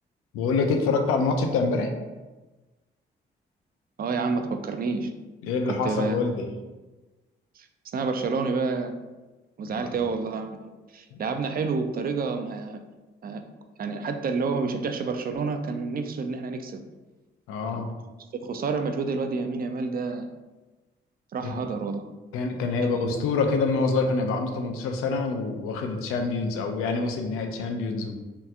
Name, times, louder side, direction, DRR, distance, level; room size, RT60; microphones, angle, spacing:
voice 1, 0.3-1.9 5.4-6.4 9.6-9.9 11.1-11.2 17.5-17.9 21.5-21.6 22.3-28.2, left 4 dB, 85° left, 4 dB, 0.4 m, -26 dB
voice 2, 4.0-5.1 5.8-6.2 7.6-9.0 9.6-12.8 13.2-13.4 13.8-16.8 17.7-17.8 18.3-20.3 21.3-22.0 22.8-23.1, right 4 dB, 45° right, 7 dB, 0.4 m, -29 dB
2.9 x 2.3 x 3.4 m, 1.2 s
supercardioid pair, 60°, 21 cm